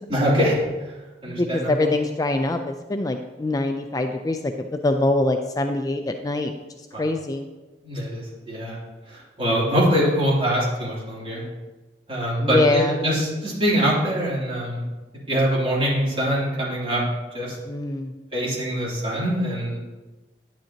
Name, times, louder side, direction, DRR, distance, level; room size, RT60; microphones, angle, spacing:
voice 1, 0.1-1.0 1.2-1.9 6.9-7.0 7.8-8.8 9.1-11.4 12.1-14.8 15.3-17.0 17.3-17.6 18.3-19.8, equal, 30° right, -6 dB, 2.9 m, -23 dB
voice 2, 1.3-6.5 7.0-7.5 12.4-13.0 17.6-18.1, left 2 dB, 20° left, 6 dB, 0.3 m, -24 dB
10.0 x 9.1 x 2.8 m, 1.2 s
head